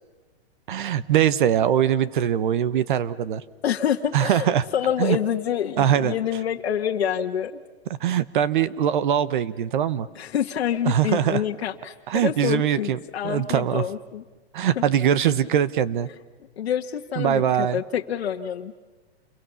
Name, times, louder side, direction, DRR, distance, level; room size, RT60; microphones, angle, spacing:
voice 1, 0.7-3.4 4.1-4.7 5.0-5.2 5.8-6.1 8.0-10.1 10.8-11.4 12.1-13.0 13.2-13.8 14.5-16.1 17.2-17.8, right 10 dB, 50° right, 17 dB, 1.1 m, -22 dB
voice 2, 3.6-7.5 10.1-14.2 14.7-14.8 16.6-18.7, left 9 dB, 75° left, 2 dB, 1.5 m, -27 dB
28.5 x 23.5 x 6.9 m, 1.3 s
hypercardioid pair, 165°, 32 cm